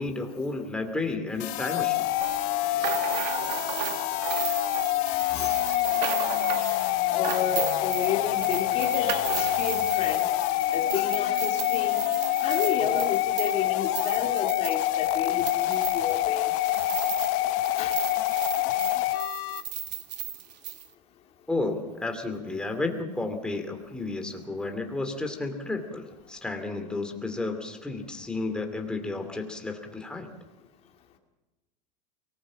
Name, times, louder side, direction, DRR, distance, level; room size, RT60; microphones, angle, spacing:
voice 1, 0.0-2.1 21.5-30.3, left 2 dB, 5° left, 4 dB, 2.5 m, -32 dB
sound 1, 1.4-19.6, left 15 dB, 50° left, 1.0 m, -26 dB
sound 2, 2.2-17.4 17.6-20.9, right 11 dB, 80° right, 1.8 m, -36 dB
voice 2, 5.1-5.8 7.1-10.3 10.7-12.0 12.4-16.5 17.8-18.0, left 7 dB, 30° left, 1 dB, 2.4 m, -32 dB
23.5 x 19.0 x 7.4 m, 1.1 s
supercardioid pair, 150°, 21 cm